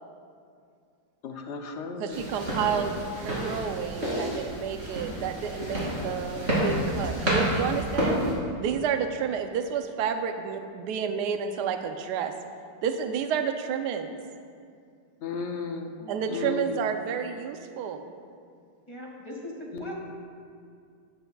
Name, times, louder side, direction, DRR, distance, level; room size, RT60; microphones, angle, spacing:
voice 1, 1.2-2.3 15.2-16.0 16.3-16.6 19.7-19.9, left 5 dB, 70° left, 4 dB, 0.6 m, -34 dB
voice 2, 2.0-8.2 8.6-12.3 12.8-14.2 16.1-18.1, right 7 dB, 70° right, 7 dB, 1.2 m, -30 dB
sound 1, 2.1-8.3, right 1 dB, 35° right, 3.2 m, -29 dB
voice 3, 18.9-19.5 19.8-19.9, left 1 dB, 15° left, -3 dB, 1.8 m, -40 dB
13.5 x 11.0 x 2.3 m, 2.3 s
omnidirectional pair, 1.9 m